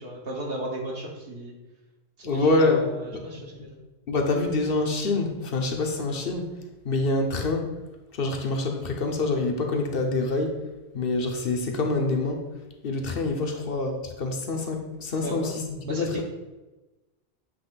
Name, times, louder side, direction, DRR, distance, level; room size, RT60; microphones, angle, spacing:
voice 1, 0.0-1.5 2.2-3.8 13.5-13.6 15.2-16.2, right 1 dB, 65° right, -1 dB, 1.4 m, -35 dB
voice 2, 2.2-2.8 3.6-3.7 4.1-6.5 6.8-7.7 8.1-10.6 10.9-12.4 12.8-16.2, left 2 dB, 65° left, 2 dB, 1.0 m, -26 dB
7.8 x 3.0 x 3.9 m, 1.1 s
omnidirectional pair, 1.1 m